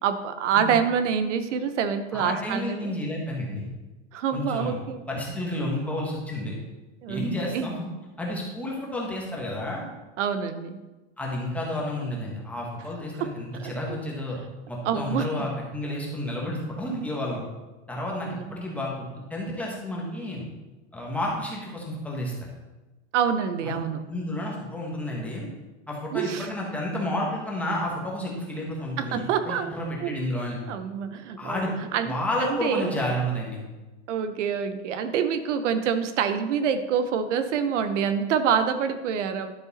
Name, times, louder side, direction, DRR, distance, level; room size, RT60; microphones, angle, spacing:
voice 1, 0.0-2.9 4.1-5.0 7.0-7.2 7.5-7.7 10.2-10.8 13.2-13.3 13.5-13.7 14.8-15.5 18.2-18.6 23.1-24.0 26.1-26.5 29.0-29.7 30.0-30.2 30.7-31.6 31.9-32.1 32.5-33.0 34.1-39.5, right 7 dB, 85° right, 10 dB, 1.0 m, -26 dB
voice 2, 2.1-3.6 4.3-4.8 5.1-6.5 7.1-7.8 8.2-9.8 11.2-14.4 14.7-17.4 17.9-20.4 20.9-22.3 23.6-23.8 24.1-25.5 25.9-30.6 31.4-31.7 32.1-33.6, left 1 dB, 5° left, -3 dB, 1.3 m, -31 dB
11.5 x 6.5 x 4.2 m, 1.1 s
supercardioid pair, 175°, 35 cm